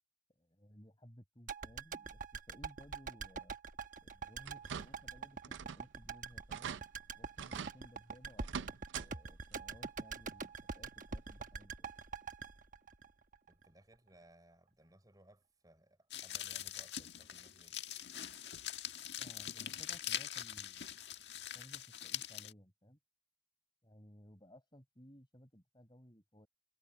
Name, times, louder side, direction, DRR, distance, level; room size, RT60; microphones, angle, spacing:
voice 1, 0.4-2.2 2.5-3.5 4.0-5.4 5.6-6.8 7.2-8.7 9.0-11.9 19.2-20.9 21.5-23.0 23.8-26.5, equal, 25° left, 6.6 m, -59 dB
sound 1, 1.5-13.7 13.9-14.0, right 5 dB, 45° right, 1.2 m, -45 dB
sound 2, 4.4-5.1 5.4-5.9 6.2-6.3 6.5-6.8 7.4-7.8 8.4-9.1 9.4-9.5 10.9-11.0 11.5-11.6, right 7 dB, 80° right, 0.5 m, -44 dB
voice 2, 13.5-17.8, right 1 dB, 20° right, 5.1 m, -64 dB
sound 3, 16.1-22.5, left 10 dB, 65° left, 1.7 m, -43 dB
head